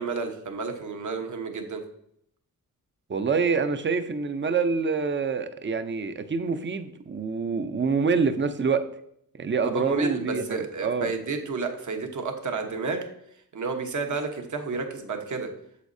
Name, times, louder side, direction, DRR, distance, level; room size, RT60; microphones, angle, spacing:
voice 1, 0.0-1.8 9.7-13.0 13.5-15.5, right 4 dB, 55° right, 5 dB, 1.1 m, -31 dB
voice 2, 3.1-8.8 9.3-11.1, right 5 dB, 35° right, 9 dB, 0.6 m, -26 dB
8.2 x 7.4 x 2.7 m, 0.71 s
wide cardioid pair, 115°, 35 cm